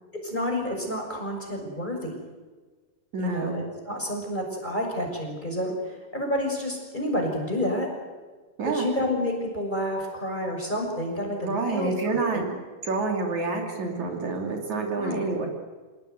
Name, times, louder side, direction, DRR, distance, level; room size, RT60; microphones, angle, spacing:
voice 1, 0.1-2.2 3.2-7.9 8.7-12.4 14.9-15.2, left 1 dB, 15° left, 1 dB, 6.3 m, -29 dB
voice 2, 3.1-3.5 8.6-8.9 11.4-12.6 12.8-15.5, right 3 dB, 60° right, 1 dB, 4.1 m, -28 dB
27.5 x 19.0 x 9.4 m, 1.4 s
omnidirectional pair, 3.8 m